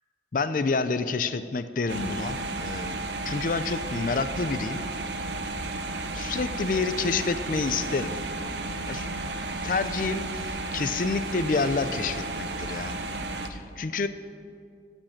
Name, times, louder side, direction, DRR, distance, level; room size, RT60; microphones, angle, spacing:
voice 1, 0.3-3.0 3.2-4.8 6.1-8.2 8.9-9.3 9.6-13.0 13.5-14.1, left 4 dB, 50° left, 12 dB, 0.5 m, -28 dB
sound 1, 1.9-13.5, right 2 dB, 85° right, 0.8 m, -33 dB
14.0 x 5.3 x 8.7 m, 2.3 s
head